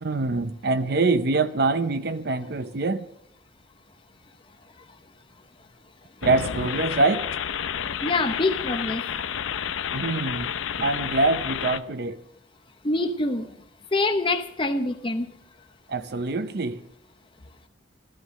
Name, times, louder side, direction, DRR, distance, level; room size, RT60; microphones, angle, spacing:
voice 1, 0.0-3.0 6.2-7.3 9.9-10.5 10.8-12.2 15.9-16.8, right 3 dB, 55° right, 0.6 m, -24 dB
sound 1, 6.2-11.8, left 8 dB, 85° left, 0.6 m, -30 dB
voice 2, 8.0-9.0 12.8-13.5 13.9-15.3, left 2 dB, 25° left, 0.8 m, -25 dB
14.0 x 13.0 x 6.4 m
head